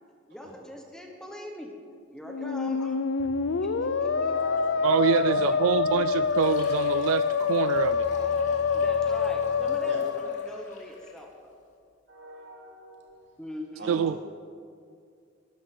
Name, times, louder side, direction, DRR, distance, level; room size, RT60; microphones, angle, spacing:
voice 1, 0.3-1.7 2.1-4.7 5.5-5.6 5.9-6.3 8.7-11.5 13.4-14.0, left 1 dB, 5° left, 1 dB, 1.2 m, -42 dB
Musical instrument, 2.2-11.0, left 5 dB, 70° left, 0.5 m, -26 dB
sound 1, 3.2-7.3 7.7-9.8, right 2 dB, 30° right, 0.7 m, -49 dB
voice 2, 4.1-5.7 8.2-10.0 12.1-13.2 13.8-14.0, equal, 55° right, -2 dB, 3.1 m, -43 dB
voice 3, 4.8-8.0 13.9-14.2, right 8 dB, 85° right, 15 dB, 0.3 m, -26 dB
Fill (with liquid), 6.2-11.3, left 2 dB, 35° left, 2.4 m, -49 dB
12.5 x 12.0 x 6.9 m, 2.3 s
head